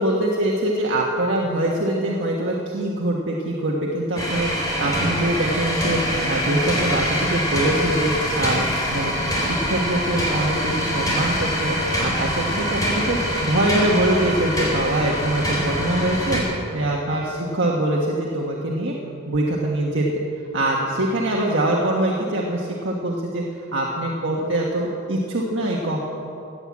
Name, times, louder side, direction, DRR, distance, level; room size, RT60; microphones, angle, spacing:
voice 1, 0.0-8.1 8.4-16.4 16.7-18.9 19.3-20.2 20.5-23.4 23.7-26.0, right 1 dB, 80° right, -2 dB, 1.4 m, -23 dB
sound 1, 4.2-16.4, equal, 20° left, 3.7 m, -24 dB
15.0 x 9.1 x 8.5 m, 2.6 s
head